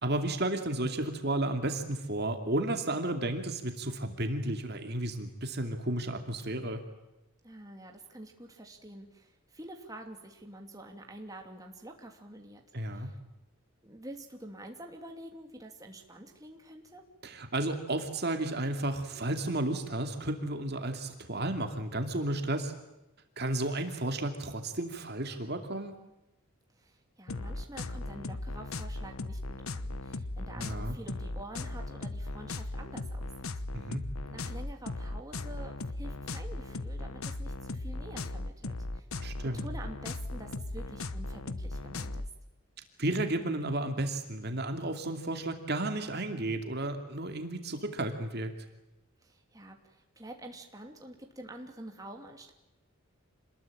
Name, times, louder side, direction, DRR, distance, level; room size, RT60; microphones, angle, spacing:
voice 1, 0.0-6.8 12.7-13.1 17.2-22.7 23.4-25.9 30.6-31.0 33.7-34.0 39.2-39.6 43.0-48.5, right 1 dB, 45° right, 5 dB, 2.6 m, -33 dB
voice 2, 7.4-12.6 12.9-13.2 13.8-17.0 26.7-33.3 33.5-34.0 34.3-39.1 39.5-42.3 49.2-52.5, right 1 dB, 15° right, 2 dB, 2.9 m, -47 dB
sound 1, 27.3-42.3, left 2 dB, 75° left, 1.2 m, -37 dB
27.5 x 21.0 x 9.0 m, 0.93 s
head